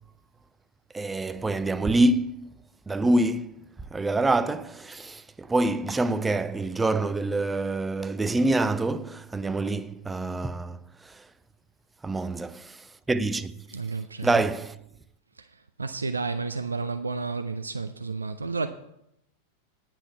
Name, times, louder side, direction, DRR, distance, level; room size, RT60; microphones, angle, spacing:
voice 1, 0.9-2.5 2.9-3.6 3.9-10.8 12.0-12.8 13.1-13.5 14.2-14.8, right 2 dB, 10° right, 0.5 m, -26 dB
voice 2, 13.7-14.3 15.4-15.5 15.8-18.7, right 4 dB, 75° right, 0.4 m, -31 dB
9.7 x 5.9 x 8.2 m
figure-of-eight pair, 90°, 0 cm